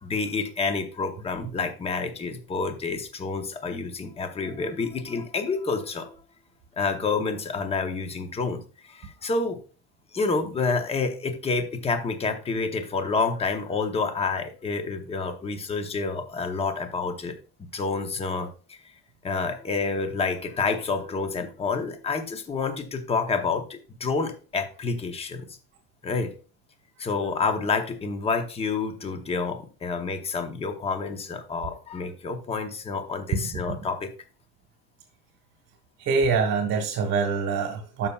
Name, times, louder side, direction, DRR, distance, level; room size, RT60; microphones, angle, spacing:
voice 1, 0.0-6.2 6.8-9.6 10.1-17.4 17.7-18.8 19.2-25.5 26.0-26.3 27.0-34.1, left 4 dB, 15° left, 7 dB, 0.8 m, -28 dB
voice 2, 33.3-33.8 36.0-38.1, right 5 dB, 45° right, 4 dB, 1.4 m, -25 dB
12.5 x 5.6 x 2.3 m, 0.37 s
cardioid pair, 150°, 36 cm